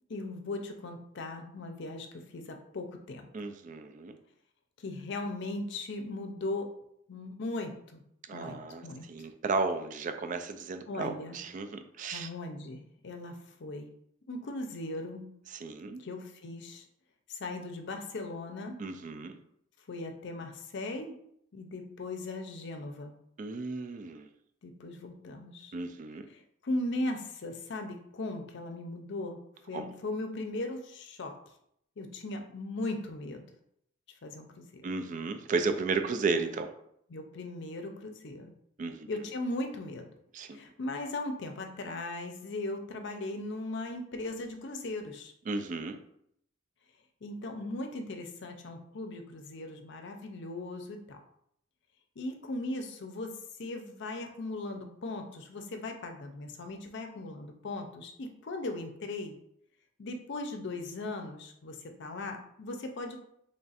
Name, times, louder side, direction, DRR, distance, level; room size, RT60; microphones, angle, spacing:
voice 1, 0.1-3.3 4.8-6.7 7.1-8.0 8.3-9.3 10.9-11.4 12.1-13.9 14.3-15.3 16.0-16.8 17.3-18.8 19.9-21.1 21.5-23.1 24.6-25.7 26.3-29.4 29.7-31.4 32.0-33.5 34.2-34.9 37.1-38.5 39.1-40.1 40.5-45.3 47.2-51.2 52.2-59.4 60.0-63.2, left 2 dB, 60° left, 5 dB, 0.5 m, -38 dB
voice 2, 3.3-4.2 8.3-8.8 9.1-12.3 15.6-16.0 18.8-19.4 23.4-24.3 25.7-26.3 29.7-29.9 34.8-36.7 38.8-39.1 40.3-40.6 45.5-46.0, right 4 dB, 40° right, 8 dB, 0.3 m, -34 dB
3.3 x 2.4 x 4.0 m, 0.72 s
head